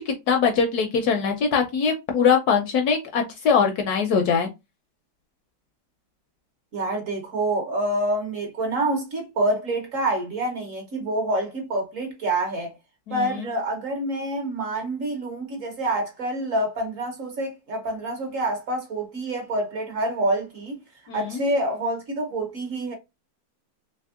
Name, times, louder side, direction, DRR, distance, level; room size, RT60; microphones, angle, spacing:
voice 1, 0.0-4.5 13.1-13.5 21.1-21.4, left 6 dB, 70° left, 0.9 m, -22 dB
voice 2, 6.7-12.7 13.1-20.8 21.1-22.9, right 1 dB, 55° right, 1.0 m, -27 dB
3.4 x 3.1 x 2.3 m
omnidirectional pair, 2.0 m